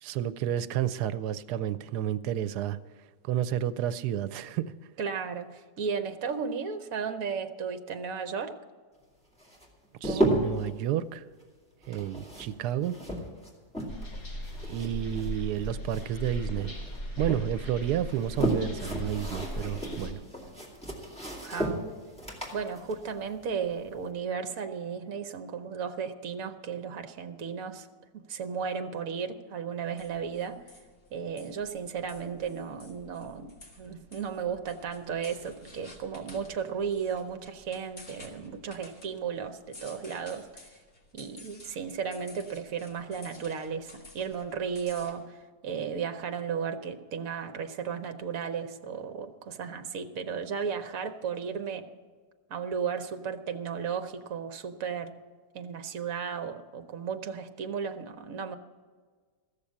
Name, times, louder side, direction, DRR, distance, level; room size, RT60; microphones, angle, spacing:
voice 1, 0.0-2.8 3.2-4.7 10.0-11.2 11.9-13.0 14.6-16.8 17.2-20.2, right 11 dB, 85° right, 15 dB, 1.1 m, -31 dB
voice 2, 5.0-8.6 10.0-10.3 21.4-22.0 22.5-27.9 28.1-30.7 31.1-40.7 41.1-51.9 52.5-55.2 55.5-58.6, right 6 dB, 65° right, 8 dB, 1.2 m, -35 dB
sound 1, 9.4-10.7 11.8-14.2 14.4-16.3 16.6-17.4 18.0-24.0, right 1 dB, 5° left, 2.2 m, -33 dB
sound 2, 13.9-20.1, equal, 80° left, 2.8 m, -38 dB
sound 3, 30.0-45.1, left 2 dB, 45° left, 2.1 m, -53 dB
15.0 x 6.8 x 8.5 m, 1.5 s
omnidirectional pair, 1.7 m